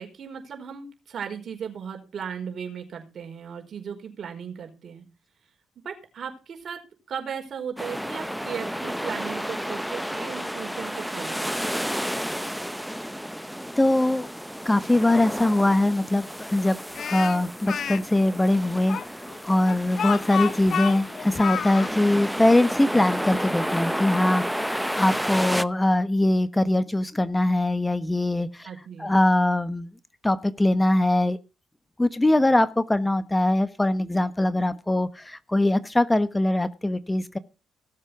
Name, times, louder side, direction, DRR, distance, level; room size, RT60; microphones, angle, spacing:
voice 1, 0.0-5.0 5.8-6.8 7.1-11.8 28.6-29.1, right 7 dB, 60° right, 4 dB, 4.8 m, -36 dB
sound 1, 7.8-25.7, equal, ahead, 0.8 m, -32 dB
voice 2, 13.8-14.3 14.6-19.0 19.3-28.7 29.0-29.9 30.2-31.4 32.0-37.4, left 1 dB, 15° left, 13 dB, 1.2 m, -22 dB
Speech, 16.9-18.0 18.9-21.9, left 8 dB, 60° left, 0.8 m, -30 dB
17.5 x 7.5 x 6.0 m, 0.32 s
hypercardioid pair, 50°, 0 cm